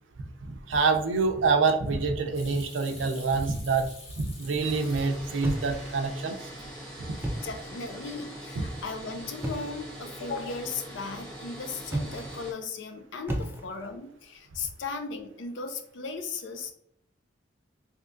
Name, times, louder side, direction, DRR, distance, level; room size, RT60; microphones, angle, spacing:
voice 1, 0.4-3.9 4.2-6.4 8.6-8.7, right 4 dB, 90° right, 6 dB, 0.5 m, -26 dB
Hands / Sink (filling or washing), 2.3-5.5 5.9-6.7 7.0-7.5 7.7-8.2, left 2 dB, 35° left, 0.8 m, -49 dB
sound 1, 4.6-12.5, right 1 dB, 5° left, 1.2 m, -43 dB
sound 2, 5.4-6.2 7.1-7.8 9.4-9.9 11.8-12.5 13.3-14.0, right 1 dB, 10° right, 0.3 m, -34 dB
voice 2, 7.4-16.7, left 4 dB, 75° left, 6 dB, 0.5 m, -37 dB
3.4 x 2.7 x 2.5 m, 0.70 s
head